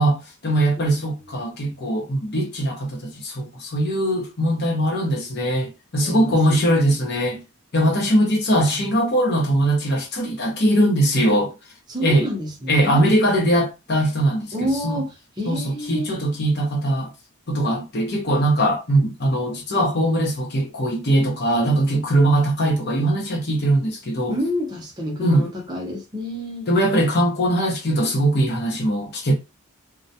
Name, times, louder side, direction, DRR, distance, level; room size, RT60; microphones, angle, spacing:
voice 1, 0.0-7.4 7.7-11.5 12.0-12.3 12.7-14.5 14.8-15.0 15.5-17.1 17.5-24.4 25.2-25.4 26.7-29.3, right 1 dB, 50° left, 0.8 m, -21 dB
voice 2, 6.0-6.7 8.5-8.9 11.9-13.1 14.5-16.1 24.3-26.7, left 1 dB, 20° right, 0.6 m, -29 dB
2.2 x 2.1 x 2.7 m
head